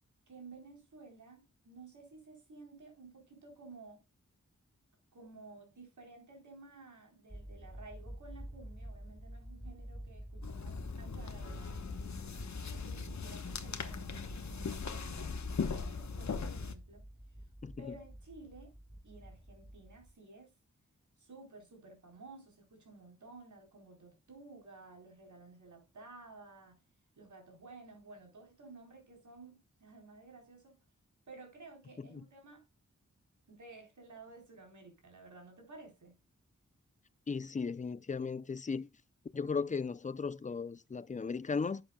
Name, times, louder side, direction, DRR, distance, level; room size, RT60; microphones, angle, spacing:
voice 1, 0.3-4.0 5.1-11.8 12.2-17.0 17.8-18.8 19.0-20.5 21.2-26.8 27.2-30.8 31.3-32.7 33.5-36.1, right 3 dB, 80° right, 4.0 m, -54 dB
sound 1, 7.3-20.1, equal, ahead, 1.7 m, -49 dB
sound 2, 10.4-16.8, left 5 dB, 70° left, 1.1 m, -39 dB
voice 2, 37.3-38.9 39.3-41.8, left 5 dB, 25° left, 0.4 m, -36 dB
11.5 x 7.6 x 2.3 m
wide cardioid pair, 90°, 29 cm